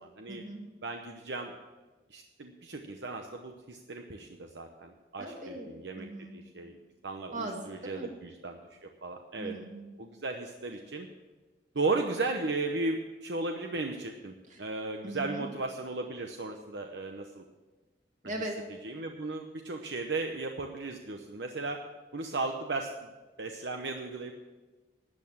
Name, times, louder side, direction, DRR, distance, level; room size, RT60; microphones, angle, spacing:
voice 1, 0.3-0.6 5.2-5.7 5.9-6.5 7.3-8.1 9.4-9.9 14.5-14.6 15.0-15.5 18.2-18.6, right 1 dB, 45° right, 1 dB, 2.5 m, -39 dB
voice 2, 0.8-1.5 2.1-6.1 6.3-6.8 7.0-9.5 10.0-11.1 11.7-17.4 18.8-21.8 22.1-23.1 23.4-24.3, right 3 dB, 75° right, 4 dB, 0.9 m, -35 dB
12.5 x 8.7 x 7.3 m, 1.2 s
head